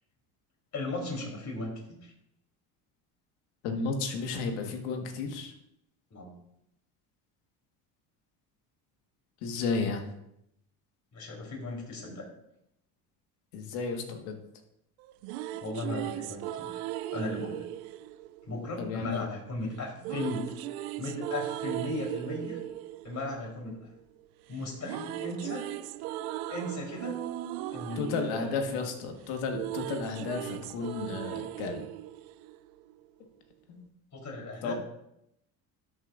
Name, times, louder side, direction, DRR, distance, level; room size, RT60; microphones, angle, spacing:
voice 1, 0.7-2.1 6.1-6.4 11.1-12.3 15.6-16.8 17.1-17.6 18.4-20.5 21.0-22.6 23.0-23.9 24.5-25.7 26.5-27.2 27.7-28.8 34.1-34.7, left 2 dB, 40° left, -1 dB, 3.9 m, -36 dB
voice 2, 3.6-5.5 9.4-10.0 13.5-14.3 18.8-19.2 28.0-31.8 33.7-33.9 34.6-34.7, left 4 dB, 85° left, 4 dB, 1.7 m, -33 dB
sound 1, 15.0-19.1 20.0-24.2 24.5-33.0, right 14 dB, 90° right, 0.6 m, -38 dB
12.5 x 7.7 x 2.6 m, 0.81 s
supercardioid pair, 95°, 43 cm